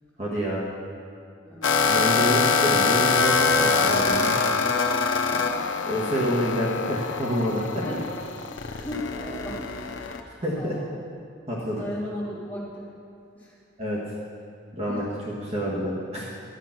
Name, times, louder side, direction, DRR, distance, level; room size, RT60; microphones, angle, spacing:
voice 1, 0.2-0.7 1.9-4.3 5.8-7.8 10.4-10.7 11.5-11.8 13.8-14.0 14.7-15.0 15.4-16.3, equal, 35° right, -6 dB, 1.7 m, -27 dB
voice 2, 1.4-2.5 5.2-5.5 7.8-8.0 8.6-9.6 9.9-10.9 11.7-12.9 13.3-13.5 14.9-15.1, left 1 dB, 10° left, -10 dB, 3.3 m, -37 dB
sound 1, 1.6-10.2, left 4 dB, 90° left, 0.8 m, -24 dB
12.0 x 8.1 x 6.0 m, 2.4 s
head